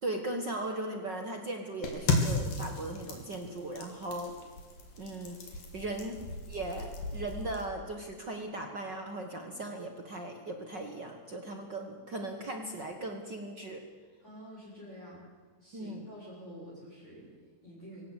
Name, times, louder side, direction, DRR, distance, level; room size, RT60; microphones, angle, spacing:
voice 1, 0.0-4.3 5.0-6.2 6.5-13.8 15.7-16.0, right 2 dB, 60° right, 4 dB, 1.1 m, -38 dB
sound 1, 1.8-7.6, left 3 dB, 65° left, 4.5 m, -35 dB
voice 2, 14.2-15.2 15.6-18.0, equal, 15° left, -7 dB, 6.1 m, -49 dB
24.5 x 16.5 x 8.2 m, 1.5 s
omnidirectional pair, 4.3 m